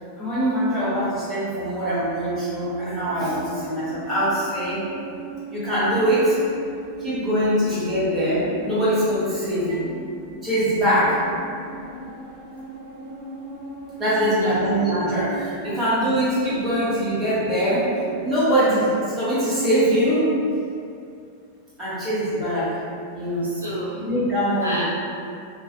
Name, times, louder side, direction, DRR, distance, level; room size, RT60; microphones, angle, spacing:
voice 1, 0.2-4.8 5.5-6.4 7.0-9.8 10.4-11.2 14.0-17.9 18.2-20.3 21.8-22.8 23.1-23.5 24.0-24.8, equal, 10° right, -13 dB, 1.1 m, -22 dB
sound 1, 3.0-18.6, right 1 dB, 45° right, 0.9 m, -38 dB
voice 2, 14.1-14.6 15.6-15.8 23.4-24.0 24.6-24.8, right 1 dB, 75° right, -7 dB, 0.4 m, -32 dB
2.4 x 2.3 x 2.3 m, 2.4 s
figure-of-eight pair, 90°, 0 cm